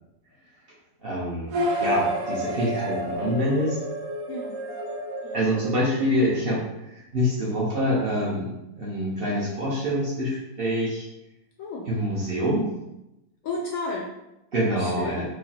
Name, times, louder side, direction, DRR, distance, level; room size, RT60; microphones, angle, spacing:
voice 1, 1.0-1.5 1.8-3.8 5.3-11.1 11.8-12.7 14.5-15.2, equal, 45° right, -5 dB, 0.8 m, -26 dB
sound 1, 1.5-6.3, equal, 90° right, 1.6 m, -30 dB
voice 2, 4.3-4.6 5.2-5.6 11.6-11.9 13.4-14.2 14.8-15.2, left 3 dB, 75° left, -1 dB, 0.7 m, -33 dB
4.9 x 2.3 x 2.8 m, 0.92 s
omnidirectional pair, 1.9 m